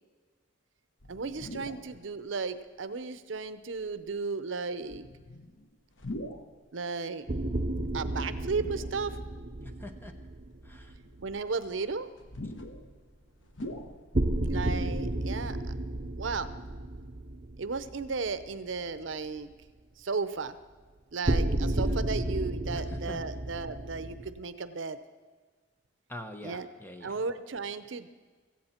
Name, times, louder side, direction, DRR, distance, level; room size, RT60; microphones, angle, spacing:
sound 1, 1.0-2.0 2.6-2.7 3.8-4.1 4.8-6.6 7.7-9.3 9.8-9.9 10.5-14.4 14.7-14.8 15.0-15.5, left 1 dB, 80° left, 1.1 m, -44 dB
voice 1, 1.1-5.1 6.7-7.3 7.9-9.2 11.2-12.1 14.5-15.7 16.2-16.5 17.6-19.5 20.0-20.6 21.1-25.0 26.4-26.7 27.0-28.1, right 4 dB, 80° right, 12 dB, 0.7 m, -34 dB
sound 2, 7.3-11.4 14.1-18.5 18.9-19.0 21.2-24.3, right 1 dB, 40° right, 1.0 m, -32 dB
voice 2, 9.6-10.1 10.6-11.0 21.7-22.0 22.7-23.2 26.1-27.2, left 1 dB, 10° left, 6 dB, 1.0 m, -44 dB
17.0 x 15.0 x 4.4 m, 1.4 s
head